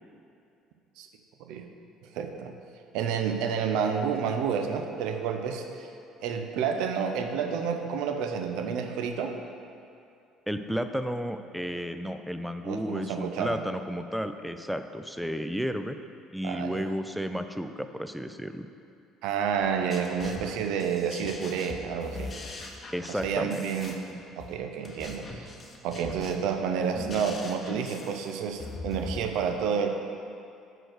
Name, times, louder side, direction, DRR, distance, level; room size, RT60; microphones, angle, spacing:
voice 1, 2.1-2.5 2.9-5.9 6.2-9.3 12.6-13.6 16.4-16.9 19.2-22.3 23.2-24.0 24.4-25.5 25.8-29.9, right 7 dB, 60° right, 5 dB, 0.5 m, -30 dB
voice 2, 10.5-16.0 16.3-18.7 22.9-23.6, equal, ahead, 8 dB, 0.4 m, -32 dB
sound 1, 19.6-29.2, left 3 dB, 35° left, 0.8 m, -41 dB
6.2 x 4.4 x 6.3 m, 2.5 s
figure-of-eight pair, 55°, 0 cm